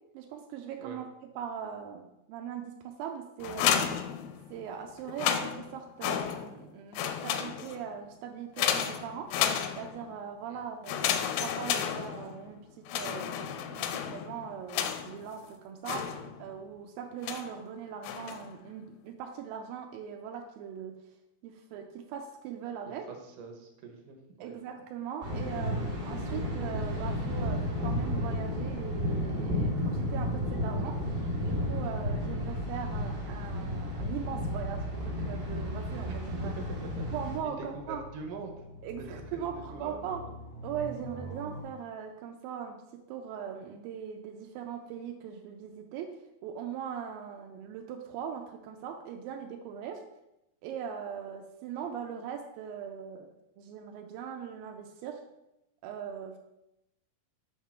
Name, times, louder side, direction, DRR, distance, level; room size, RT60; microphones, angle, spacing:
voice 1, 0.1-1.1 1.4-3.9 4.5-9.3 9.7-16.1 16.4-20.9 21.4-23.1 24.4-36.5 37.1-38.0 38.8-40.2 40.6-42.8 43.1-46.1 46.4-50.0 50.6-55.2 55.8-56.4, right 8 dB, 85° right, 4 dB, 2.1 m, -40 dB
sound 1, 3.4-4.6 5.0-6.6 6.9-7.9 8.6-10.1 10.8-12.5 12.9-15.3 15.8-16.6 17.2-17.6 18.0-18.5, left 9 dB, 85° left, 2.1 m, -32 dB
voice 2, 22.9-24.5 36.4-36.6 37.0-37.1 37.4-38.5 39.3-40.3, right 4 dB, 65° right, 3 dB, 2.2 m, -43 dB
Thunder, 25.2-37.4, left 1 dB, 45° right, 1.2 m, -32 dB
sound 2, 34.0-41.6, left 1 dB, 45° left, 0.7 m, -48 dB
7.2 x 3.7 x 5.8 m, 0.87 s
omnidirectional pair, 4.7 m